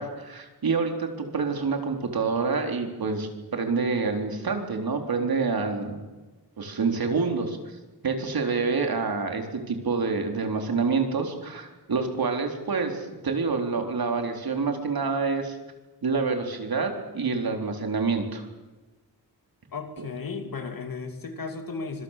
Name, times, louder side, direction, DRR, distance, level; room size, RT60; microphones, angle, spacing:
voice 1, 0.0-6.0 6.6-7.8 8.0-15.6 16.0-18.5 20.0-20.1, right 4 dB, 65° right, 4 dB, 4.1 m, -27 dB
voice 2, 19.7-22.0, left 4 dB, 60° left, 6 dB, 2.6 m, -35 dB
25.5 x 25.0 x 7.5 m, 1.2 s
wide cardioid pair, 135°, 38 cm